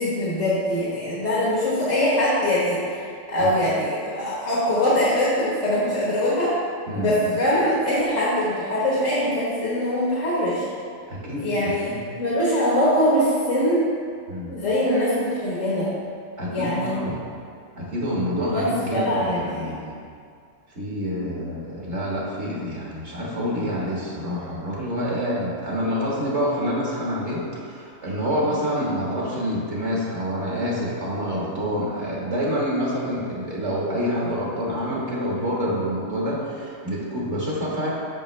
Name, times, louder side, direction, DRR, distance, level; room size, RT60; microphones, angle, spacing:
voice 1, 0.0-6.5 6.9-10.6 11.4-13.8 14.5-15.9 16.5-17.0 18.5-19.8, left 1 dB, 75° left, -7 dB, 1.7 m, -23 dB
voice 2, 6.9-7.4 11.1-12.0 14.3-14.5 16.4-17.2 17.7-19.9 20.8-37.9, equal, 65° right, -5 dB, 1.9 m, -27 dB
8.7 x 6.2 x 3.2 m, 2.3 s
omnidirectional pair, 1.3 m